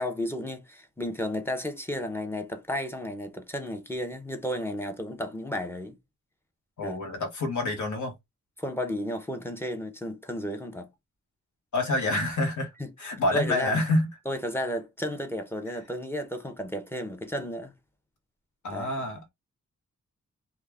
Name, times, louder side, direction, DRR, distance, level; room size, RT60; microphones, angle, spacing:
voice 1, 0.0-6.0 6.8-7.0 8.6-10.9 12.8-12.9 13.3-13.8 14.3-17.7 18.7-18.9, equal, 10° left, 0.5 m, -33 dB
voice 2, 6.8-8.1 11.7-12.7 13.0-14.1 18.6-19.3, left 2 dB, 75° left, 0.9 m, -27 dB
2.3 x 2.0 x 3.3 m
wide cardioid pair, 110°, 31 cm